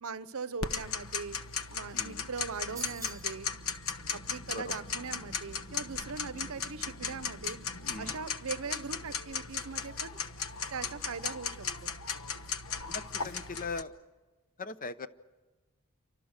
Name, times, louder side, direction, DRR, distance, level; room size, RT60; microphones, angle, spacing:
voice 1, 0.0-1.4 1.7-3.5 4.1-7.6 8.0-10.1 10.7-11.9, right 5 dB, 70° right, 15 dB, 0.9 m, -40 dB
Tick-tock, 0.6-13.8, left 6 dB, 65° left, 1.1 m, -37 dB
voice 2, 1.9-2.3 4.5-4.6 7.8-8.1 12.9-13.9 14.6-15.1, left 4 dB, 40° left, 12 dB, 0.9 m, -40 dB
sound 1, 2.8-3.4, right 6 dB, 15° right, 1.0 m, -44 dB
28.5 x 25.0 x 6.6 m, 1.2 s
head